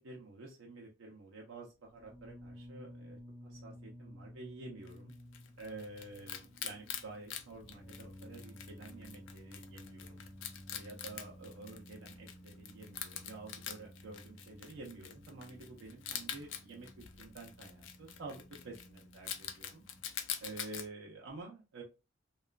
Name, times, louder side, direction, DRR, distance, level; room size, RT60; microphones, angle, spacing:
voice 1, 0.0-5.1 5.6-10.3 10.7-16.9 17.1-19.8 20.4-21.8, right 3 dB, 85° right, 0 dB, 0.6 m, -50 dB
sound 1, 1.9-20.0, equal, 15° left, 0.7 m, -54 dB
Wild animals, 4.9-20.9, left 9 dB, 70° left, 0.4 m, -46 dB
2.9 x 2.3 x 2.2 m, 0.29 s
head